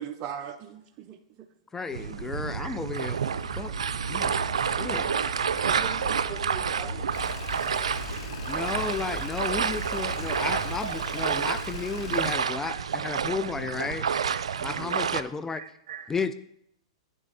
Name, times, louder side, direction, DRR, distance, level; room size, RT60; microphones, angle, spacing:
voice 1, 0.0-1.5 5.4-7.0 14.6-15.0, right 9 dB, 35° right, 0.6 m, -40 dB
voice 2, 1.7-3.2 3.6-3.7 4.1-4.4 4.8-5.1 8.5-14.1 14.6-15.6 16.1-16.3, left 4 dB, 10° left, 0.4 m, -33 dB
sound 1, 1.9-15.2, right 7 dB, 90° right, 0.5 m, -29 dB
sound 2, 3.3-10.9, equal, 80° left, 2.6 m, -39 dB
sound 3, 7.1-12.3, left 6 dB, 65° left, 1.6 m, -42 dB
voice 3, 14.3-14.7 15.5-16.1, right 9 dB, 65° right, 1.3 m, -44 dB
9.1 x 7.6 x 4.0 m
hypercardioid pair, 130°, 3 cm